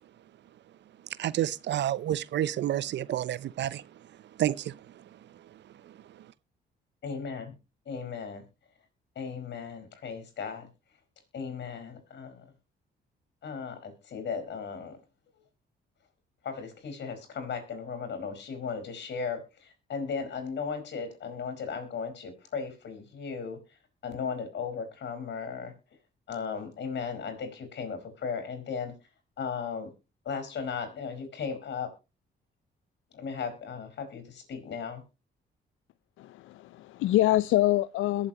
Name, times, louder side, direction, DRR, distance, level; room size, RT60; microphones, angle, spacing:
voice 1, 1.2-3.9 4.4-6.3, right 12 dB, 65° right, 0.6 m, -31 dB
voice 2, 7.0-7.5 7.8-8.4 9.1-10.7 11.3-12.5 13.4-15.0 16.4-23.6 24.0-25.7 26.3-28.9 29.4-29.9 30.2-31.9 33.1-35.0, left 6 dB, 65° left, 4.8 m, -36 dB
voice 3, 36.2-38.3, left 15 dB, 85° left, 0.5 m, -25 dB
22.0 x 7.4 x 2.9 m
cardioid pair, 90°, 20 cm